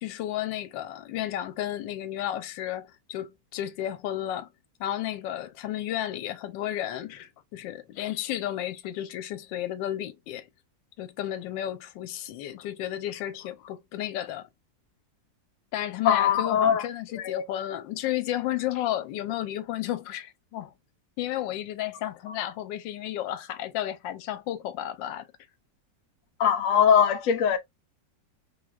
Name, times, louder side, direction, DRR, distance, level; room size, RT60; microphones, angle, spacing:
voice 1, 0.0-4.5 4.8-10.5 11.0-14.5 15.7-20.7 21.2-25.3, left 12 dB, 90° left, 1.3 m, -32 dB
voice 2, 16.0-16.8 17.2-17.5 26.4-27.6, left 8 dB, 65° left, 0.8 m, -21 dB
3.4 x 3.2 x 2.3 m
omnidirectional pair, 2.0 m